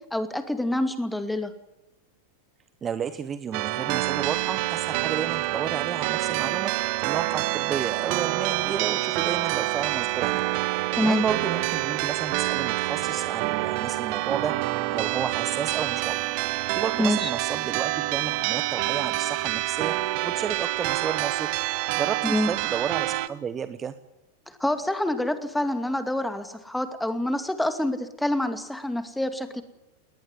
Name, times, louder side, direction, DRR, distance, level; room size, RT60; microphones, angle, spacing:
voice 1, 0.1-1.5 10.9-11.2 17.0-17.3 22.2-22.5 24.5-29.6, left 1 dB, 5° left, 9 dB, 2.4 m, -26 dB
voice 2, 2.8-6.7 7.0-10.4 11.0-14.5 14.9-16.3 16.7-21.5 22.0-23.9, right 7 dB, 25° right, 13 dB, 1.0 m, -32 dB
sound 1, 3.5-23.3, right 19 dB, 45° right, 1.0 m, -27 dB
20.0 x 19.5 x 9.8 m, 0.91 s
figure-of-eight pair, 90°, 0 cm